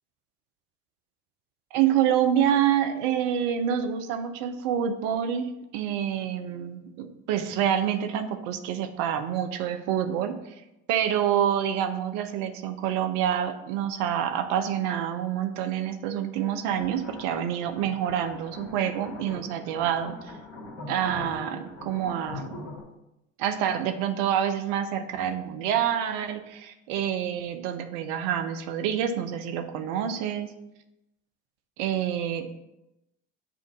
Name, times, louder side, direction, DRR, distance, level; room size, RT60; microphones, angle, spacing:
voice 1, 1.7-10.4 10.9-20.3 20.9-22.7 23.4-30.6 31.8-32.5, right 9 dB, 70° right, 8 dB, 0.7 m, -27 dB
sound 1, 16.6-22.8, left 3 dB, 75° left, 1.7 m, -42 dB
7.6 x 2.6 x 4.9 m, 0.91 s
hypercardioid pair, 70°, 32 cm